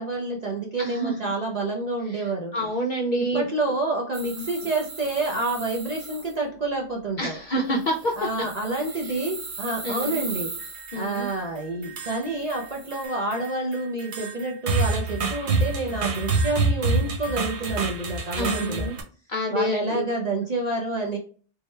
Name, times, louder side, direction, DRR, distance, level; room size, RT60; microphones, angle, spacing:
voice 1, 0.0-2.5 3.3-7.4 8.2-10.5 10.9-18.9 19.5-21.2, right 2 dB, 50° right, -1 dB, 0.5 m, -28 dB
voice 2, 0.8-1.2 2.1-2.2 2.5-3.5 7.2-8.5 9.0-9.2 9.8-10.2 10.9-11.3 18.4-19.0 19.3-20.1, equal, 60° left, 0 dB, 0.5 m, -27 dB
sound 1, 4.1-6.3 7.8-11.4 12.4-13.0, right 4 dB, 90° right, 1.2 m, -38 dB
sound 2, 10.6-11.4 11.8-12.7 12.9-19.0, right 3 dB, 65° right, 1.0 m, -27 dB
3.5 x 2.1 x 3.1 m, 0.40 s
omnidirectional pair, 1.2 m